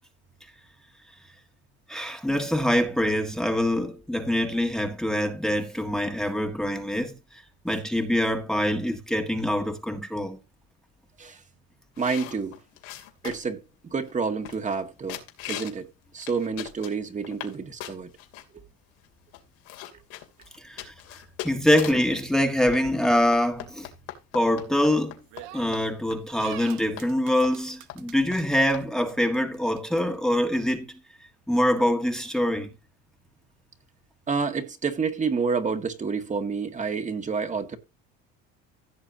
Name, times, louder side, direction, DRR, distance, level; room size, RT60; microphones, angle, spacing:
voice 1, 1.9-10.4 20.6-23.9 24.3-25.2 25.5-31.0 31.5-32.7, left 1 dB, ahead, 1.6 m, -25 dB
sound 1, 12.0-13.6 14.1-14.2 14.4-14.8 15.1-15.8 16.2-17.5 17.8-18.4 19.0-19.1 19.3-22.1 22.7-25.5 25.7-25.8 26.1-26.2 26.5-26.6 27.0-27.1 27.4-27.6 27.9-28.0 28.3-28.4 28.7-28.9, left 13 dB, 85° left, 2.8 m, -40 dB
voice 2, 12.0-12.6 13.2-15.2 15.5-15.9 16.1-18.1 18.5-18.6 34.3-37.8, right 5 dB, 25° right, 1.9 m, -29 dB
sound 2, 25.3-25.9 26.4-28.4 28.7-28.8 29.1-30.0, right 15 dB, 80° right, 1.1 m, -42 dB
16.0 x 6.9 x 2.8 m
cardioid pair, 110°, 29 cm